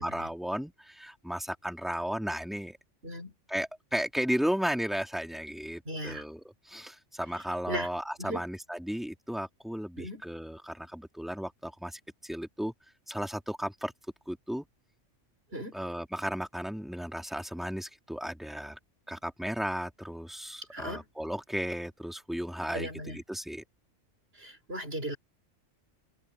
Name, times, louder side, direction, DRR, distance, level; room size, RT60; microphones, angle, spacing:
voice 1, 0.0-2.8 3.5-12.7 13.1-13.9 14.3-14.7 15.7-18.8 19.1-23.6, equal, ahead, 2.6 m, -35 dB
voice 2, 3.0-3.3 5.9-6.2 7.7-7.9 8.2-8.4 10.0-10.2 15.5-15.8 20.7-21.1 22.7-23.2 24.3-25.2, equal, 55° right, 5.2 m, -37 dB
open air
omnidirectional pair, 1.3 m